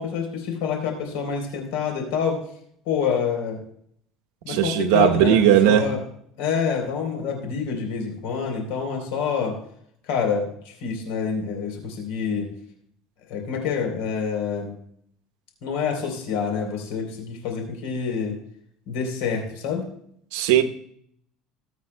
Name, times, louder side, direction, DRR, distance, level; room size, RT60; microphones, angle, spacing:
voice 1, 0.0-2.4 2.9-3.6 4.4-6.0 6.4-9.6 10.1-12.5 13.3-14.7 15.6-18.4 18.9-19.9, left 6 dB, 80° left, 3.5 m, -27 dB
voice 2, 4.5-5.9 20.3-20.6, right 10 dB, 85° right, 0.9 m, -17 dB
19.5 x 8.5 x 2.2 m
cardioid pair, 135°, 0 cm